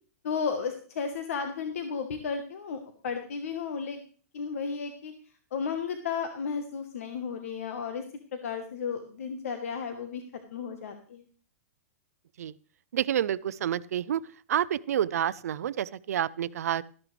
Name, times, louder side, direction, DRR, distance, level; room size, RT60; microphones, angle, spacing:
voice 1, 0.2-4.0 4.3-5.1 5.5-8.0 8.3-10.2 10.5-11.2, left 6 dB, 65° left, 7 dB, 1.2 m, -33 dB
voice 2, 12.9-14.2 14.5-16.8, right 10 dB, 75° right, 18 dB, 0.5 m, -28 dB
13.0 x 11.0 x 3.3 m, 0.42 s
supercardioid pair, 180°, 8 cm